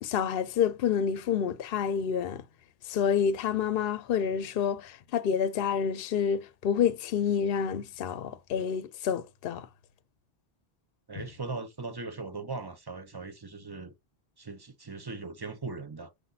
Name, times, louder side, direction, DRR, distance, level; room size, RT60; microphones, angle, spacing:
voice 1, 0.0-2.4 2.9-9.7, left 7 dB, 65° left, 0.8 m, -28 dB
voice 2, 11.1-13.9 14.4-16.1, right 3 dB, 25° right, 0.6 m, -39 dB
6.4 x 5.8 x 2.7 m
omnidirectional pair, 1.1 m